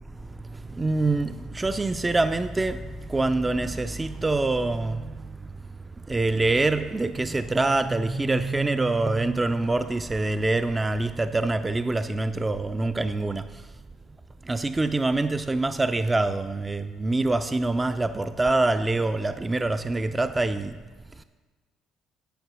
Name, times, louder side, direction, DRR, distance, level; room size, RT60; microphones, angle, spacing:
voice 1, 0.5-5.4 6.0-13.5 14.5-20.8, right 2 dB, 20° right, 0.4 m, -25 dB
10.5 x 5.4 x 6.1 m
supercardioid pair, 70°, 0 cm